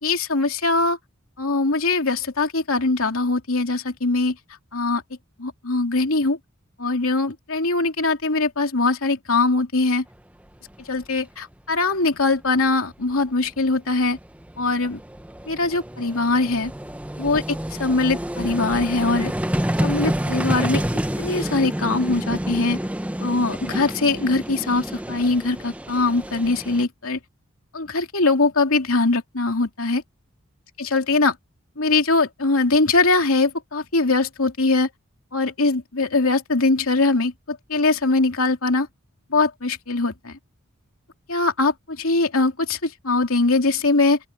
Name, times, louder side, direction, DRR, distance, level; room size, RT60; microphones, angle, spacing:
voice 1, 0.0-1.0 1.4-4.4 4.7-5.0 5.4-6.4 6.8-10.0 10.9-14.2 14.6-15.0 15.5-16.7 17.2-17.4 17.8-19.3 19.8-20.8 21.2-22.8 23.2-27.2 27.7-30.0 30.8-31.3 31.8-34.9 35.3-38.9 39.3-40.4 41.3-44.2, left 3 dB, 75° left, 2.8 m, -21 dB
Vehicle, 10.7-10.8 11.0-11.2 13.2-13.3 13.5-26.8, right 1 dB, 5° right, 0.6 m, -28 dB
open air
head